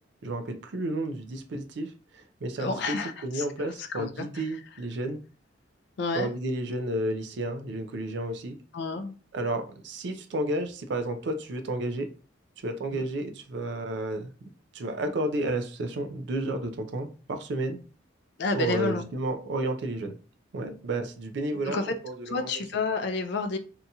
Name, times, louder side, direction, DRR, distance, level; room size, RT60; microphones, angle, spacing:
voice 1, 0.2-5.2 6.1-8.6 9.3-12.1 12.6-17.8 18.5-20.2 20.5-22.5, right 1 dB, 60° right, 0.4 m, -32 dB
voice 2, 2.6-4.6 6.0-6.3 8.7-9.1 12.9-13.0 18.4-19.0 21.7-21.9 22.3-23.6, left 3 dB, 60° left, 0.4 m, -30 dB
2.8 x 2.7 x 2.3 m
head